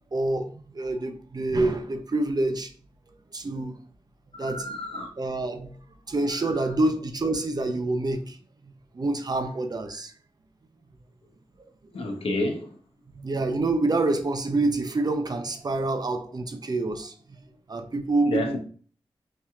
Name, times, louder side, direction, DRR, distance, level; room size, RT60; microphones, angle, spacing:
voice 1, 0.1-2.7 3.3-3.8 4.4-4.7 5.2-5.8 6.1-8.4 8.9-10.1 13.1-17.1 17.7-18.6, right 2 dB, 45° right, 0.7 m, -27 dB
voice 2, 4.4-5.1 6.3-6.4 11.9-12.8 18.2-18.6, left 2 dB, 75° left, 0.9 m, -30 dB
5.4 x 2.8 x 2.4 m
cardioid pair, 55°, 10 cm